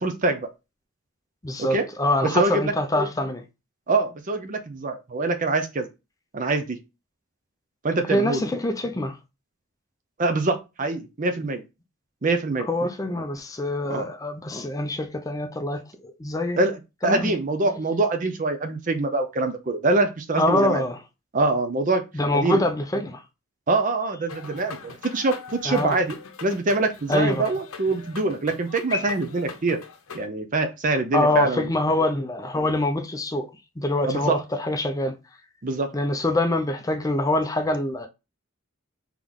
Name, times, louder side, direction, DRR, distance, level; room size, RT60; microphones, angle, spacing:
voice 1, 0.0-0.5 1.6-1.9 2.2-2.7 3.9-5.9 6.3-6.8 7.8-8.5 10.2-11.6 12.2-12.7 13.9-14.1 16.6-20.8 21.3-22.0 22.3-22.6 23.7-26.2 26.4-29.8 30.1-31.7 34.0-34.4 35.6-35.9, right 3 dB, 40° right, 0.6 m, -24 dB
voice 2, 1.4-3.4 8.1-9.2 12.7-15.8 16.2-16.6 17.0-17.3 20.3-21.0 22.1-23.2 25.7-26.0 27.1-27.5 28.9-29.1 31.1-33.5 33.8-35.1 35.9-38.1, left 1 dB, 15° left, 0.5 m, -24 dB
sound 1, 24.3-30.3, left 5 dB, 85° left, 0.8 m, -41 dB
3.9 x 3.0 x 3.5 m
head